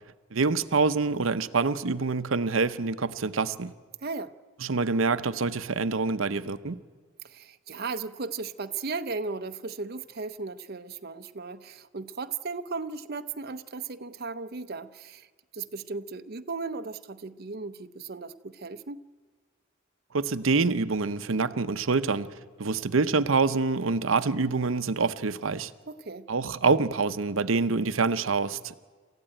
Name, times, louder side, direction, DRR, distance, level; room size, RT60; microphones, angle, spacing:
voice 1, 0.3-3.7 4.6-6.8 20.1-25.7 26.3-28.7, right 4 dB, 85° right, 11 dB, 0.8 m, -26 dB
voice 2, 4.0-4.3 7.2-15.3 15.5-19.0 25.9-26.3, right 4 dB, 50° right, 9 dB, 0.8 m, -36 dB
27.5 x 14.5 x 9.0 m, 1.5 s
head